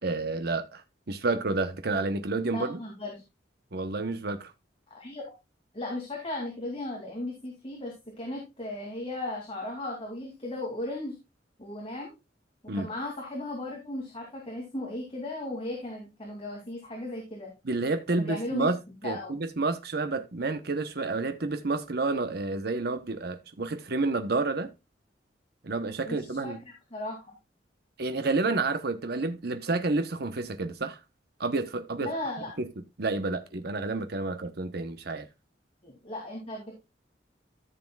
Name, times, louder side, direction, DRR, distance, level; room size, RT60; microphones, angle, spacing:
voice 1, 0.0-2.8 3.7-4.5 12.7-12.9 17.6-18.8 19.0-24.7 25.6-26.6 28.0-31.0 31.4-32.1 32.6-32.7 33.0-35.3, right 3 dB, 60° right, 0.9 m, -30 dB
voice 2, 2.5-3.2 4.9-5.2 5.7-11.2 11.6-12.1 12.7-17.5 18.1-18.7 19.0-19.4 26.0-26.5 26.9-27.3 32.0-32.5 35.8-36.8, left 1 dB, 35° left, 2.7 m, -36 dB
14.0 x 6.8 x 2.4 m
head